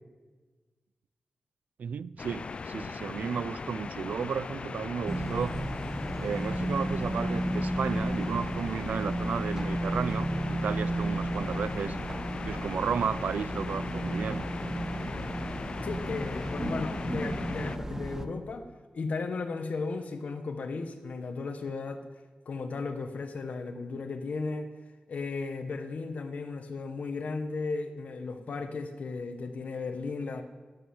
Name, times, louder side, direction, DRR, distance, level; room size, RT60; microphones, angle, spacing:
voice 1, 1.8-5.6 6.2-12.0 12.4-14.5, right 7 dB, 80° right, 0.4 m, -33 dB
sound 1, 2.2-17.8, left 4 dB, 45° left, 0.5 m, -39 dB
sound 2, 5.1-18.3, right 1 dB, 15° right, 0.9 m, -33 dB
voice 2, 15.8-18.7 18.9-22.0 22.4-24.7 25.1-30.4, left 4 dB, 65° left, 1.4 m, -35 dB
12.5 x 11.0 x 7.9 m
wide cardioid pair, 140°, 3 cm